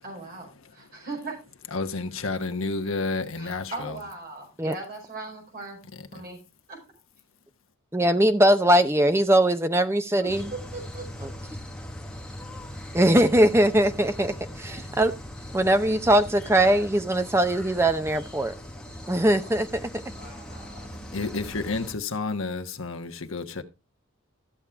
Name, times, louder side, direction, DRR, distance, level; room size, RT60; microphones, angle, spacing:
voice 1, 0.0-1.4 3.3-5.8 6.1-6.4 6.7-6.8 10.2-11.3 14.3-14.9 19.1-19.3 20.1-20.9, right 3 dB, 45° right, 5.0 m, -40 dB
voice 2, 1.7-3.9 21.1-23.6, left 3 dB, 65° left, 1.2 m, -30 dB
voice 3, 7.9-10.5 11.2-11.3 12.9-15.1 15.5-18.5 19.1-19.9, right 1 dB, 10° right, 0.7 m, -21 dB
sound 1, 10.3-21.9, left 1 dB, 5° left, 1.3 m, -40 dB
13.5 x 7.3 x 3.4 m
head